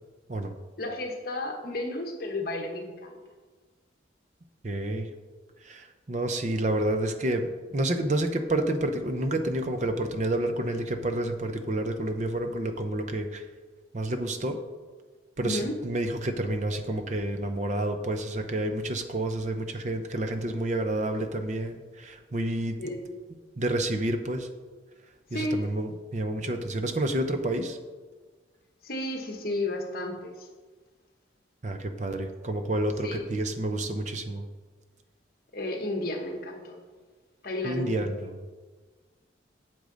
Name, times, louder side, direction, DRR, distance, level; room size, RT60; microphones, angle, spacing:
voice 1, 0.8-3.2 15.4-15.7 22.8-23.1 25.3-25.6 28.8-30.5 32.1-32.3 33.0-33.3 35.5-36.8 37.4-38.0, left 2 dB, 50° left, 2 dB, 1.2 m, -33 dB
voice 2, 4.6-5.1 5.6-13.4 13.9-14.6 15.4-22.8 23.6-24.5 25.3-27.8 31.6-34.4 37.6-38.3, right 1 dB, 40° right, 7 dB, 0.6 m, -29 dB
8.3 x 7.7 x 3.9 m, 1.4 s
head